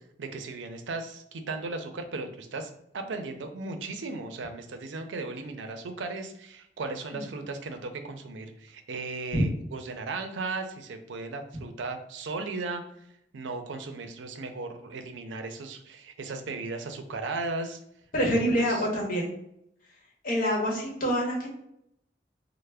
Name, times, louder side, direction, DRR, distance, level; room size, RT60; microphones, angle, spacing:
voice 1, 0.2-12.8 13.3-17.8 18.3-18.9, right 3 dB, 85° right, 7 dB, 0.4 m, -36 dB
voice 2, 18.1-19.3 20.2-21.5, equal, 50° left, -3 dB, 1.0 m, -26 dB
3.2 x 2.0 x 3.4 m, 0.77 s
head